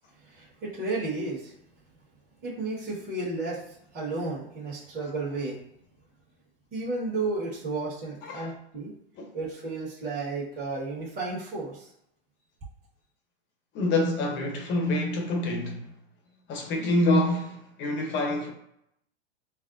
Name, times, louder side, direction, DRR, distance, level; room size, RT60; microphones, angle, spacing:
voice 1, 0.2-1.5 2.4-5.6 6.7-8.9 9.3-11.9, right 3 dB, 25° right, 1.5 m, -33 dB
voice 2, 8.2-8.5 9.2-9.3 13.7-15.9 16.5-18.5, left 1 dB, 35° left, 0.9 m, -26 dB
5.5 x 2.1 x 2.6 m
hypercardioid pair, 115°, 33 cm